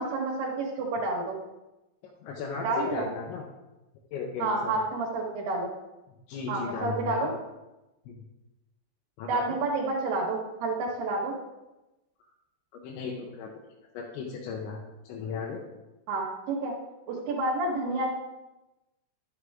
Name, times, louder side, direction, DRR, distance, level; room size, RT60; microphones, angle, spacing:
voice 1, 0.0-1.4 2.6-3.1 4.4-5.7 6.5-7.3 9.3-11.3 16.1-16.7 17.1-18.1, right 2 dB, 70° right, -5 dB, 3.3 m, -29 dB
voice 2, 2.2-3.5 4.1-4.7 6.1-7.3 8.1-8.2 9.2-9.6 12.7-13.5 13.9-14.8 15.1-15.6, left 5 dB, 90° left, -2 dB, 3.2 m, -36 dB
11.5 x 7.2 x 3.6 m, 1.0 s
omnidirectional pair, 5.1 m